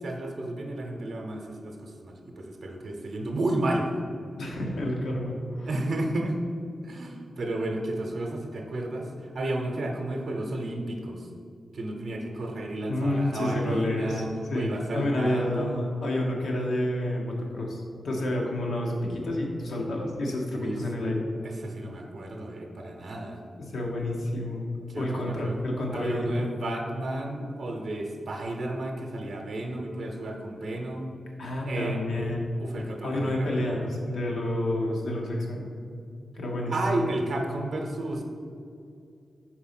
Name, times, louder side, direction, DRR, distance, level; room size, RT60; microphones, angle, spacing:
voice 1, 0.0-3.9 5.6-6.4 6.8-11.3 11.7-14.3 14.5-15.8 20.5-20.8 21.4-23.4 24.9-25.6 25.9-31.1 31.7-32.0 32.6-33.9 36.7-38.2, right 1 dB, 70° right, 1 dB, 0.7 m, -32 dB
voice 2, 4.4-5.7 12.9-14.2 14.5-14.7 14.9-21.2 23.6-24.6 24.9-26.4 31.4-32.5 33.0-35.7 36.4-37.1, left 1 dB, 80° left, -1 dB, 1.1 m, -29 dB
4.6 x 4.1 x 5.8 m, 2.4 s
wide cardioid pair, 105°, 0 cm